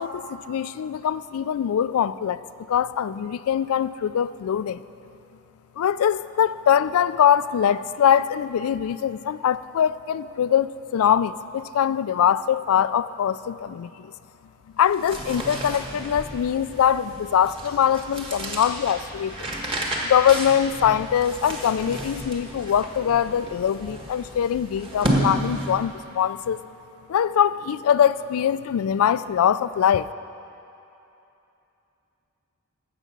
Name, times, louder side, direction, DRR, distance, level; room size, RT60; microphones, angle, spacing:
voice 1, 0.0-2.4 2.7-4.8 5.8-14.1 14.8-19.5 20.0-26.6 27.1-30.1, left 9 dB, 70° left, 15 dB, 0.3 m, -22 dB
sound 1, 14.8-26.0, right 1 dB, 25° right, 1.4 m, -32 dB
15.5 x 6.8 x 6.0 m, 2.8 s
head